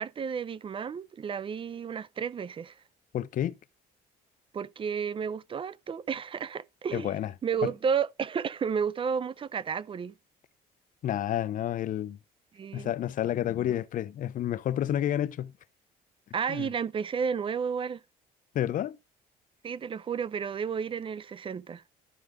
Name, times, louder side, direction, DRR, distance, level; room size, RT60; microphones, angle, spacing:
voice 1, 0.0-2.7 4.5-7.1 7.4-10.1 12.5-12.9 16.3-18.0 19.6-21.8, right 6 dB, 30° right, 0.5 m, -32 dB
voice 2, 3.1-3.5 6.9-7.3 11.0-12.2 12.7-15.5 16.5-16.7 18.5-19.0, left 11 dB, 50° left, 0.6 m, -30 dB
12.5 x 4.8 x 3.7 m
cardioid pair, 110°, 17 cm